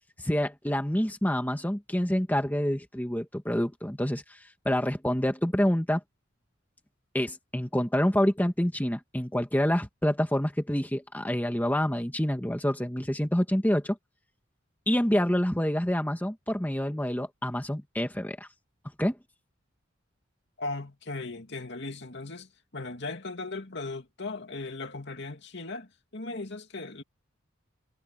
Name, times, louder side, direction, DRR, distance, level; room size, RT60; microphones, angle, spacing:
voice 1, 0.2-4.4 4.6-6.0 7.1-14.0 14.9-18.5 19.0-19.2, equal, 10° left, 1.5 m, -27 dB
voice 2, 20.6-27.0, left 3 dB, 60° left, 2.7 m, -38 dB
head